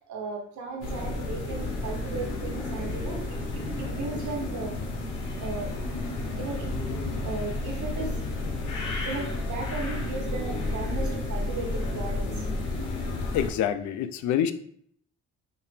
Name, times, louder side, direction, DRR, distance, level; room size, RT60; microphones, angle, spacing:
voice 1, 0.1-4.8 5.4-5.7 6.4-6.7 7.2-8.1 9.0-12.3, right 3 dB, 70° right, 1 dB, 1.3 m, -36 dB
sound 1, 0.8-13.5, left 2 dB, 90° left, 1.0 m, -31 dB
sound 2, 1.3-6.3, right 1 dB, 40° left, 0.9 m, -50 dB
voice 2, 13.3-14.5, left 10 dB, 70° left, 11 dB, 0.5 m, -26 dB
4.3 x 2.8 x 3.4 m, 0.64 s
cardioid pair, 90°, 30 cm